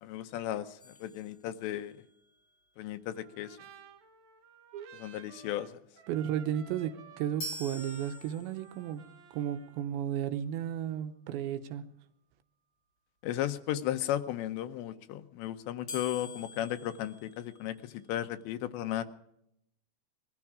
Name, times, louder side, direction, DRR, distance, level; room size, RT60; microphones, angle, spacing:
voice 1, 0.0-1.9 2.8-3.6 4.9-5.7 13.2-19.1, left 12 dB, 80° left, 2.9 m, -35 dB
sound 1, 0.8-2.1 7.4-8.9 15.9-18.0, left 1 dB, 40° left, 1.6 m, -45 dB
Trumpet, 3.2-9.9, right 7 dB, 60° right, 1.9 m, -55 dB
voice 2, 6.1-9.0 9.3-11.8, right 10 dB, 80° right, 3.1 m, -34 dB
21.0 x 13.5 x 4.9 m
omnidirectional pair, 5.2 m